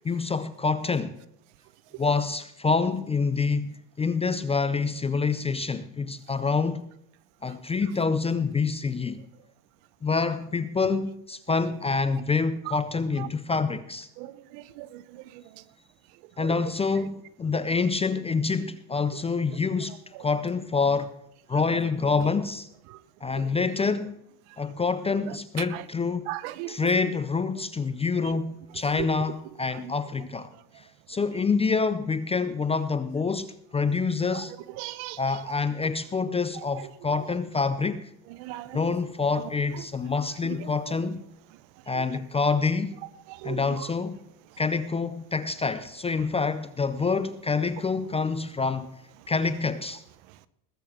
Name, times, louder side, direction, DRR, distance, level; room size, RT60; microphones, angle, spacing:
voice 1, 0.0-1.2 2.0-6.9 7.4-9.2 10.0-14.1 16.4-21.1 21.5-22.7 23.2-24.2 24.6-26.3 26.7-30.5 30.8-34.5 35.2-38.1 38.7-41.2 41.9-43.0 43.4-44.2 44.6-48.9 49.3-50.0, left 4 dB, 15° left, 0.4 m, -27 dB
voice 2, 14.2-15.4 16.4-16.5 22.9-23.0 25.7-25.8 26.3-26.7 29.0-29.1 34.3-34.4 34.8-35.2 38.4-38.8 43.3-43.6, right 17 dB, 65° right, 0.9 m, -37 dB
20.5 x 6.9 x 6.0 m
supercardioid pair, 125°, 46 cm